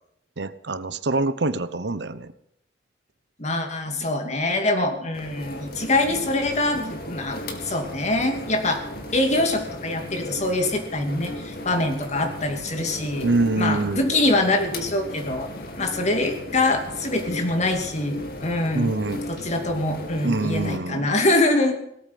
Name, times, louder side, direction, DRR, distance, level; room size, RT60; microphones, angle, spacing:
voice 1, 0.4-2.3 13.2-14.1 18.7-19.2 20.2-21.1, right 2 dB, 70° right, 13 dB, 0.9 m, -25 dB
voice 2, 3.4-8.8 9.1-13.3 13.6-15.5 15.8-18.9 19.3-21.8, left 2 dB, 40° left, 5 dB, 2.7 m, -24 dB
sound 1, 5.1-20.8, left 1 dB, 60° left, 2.4 m, -36 dB
18.0 x 8.4 x 9.5 m, 0.75 s
head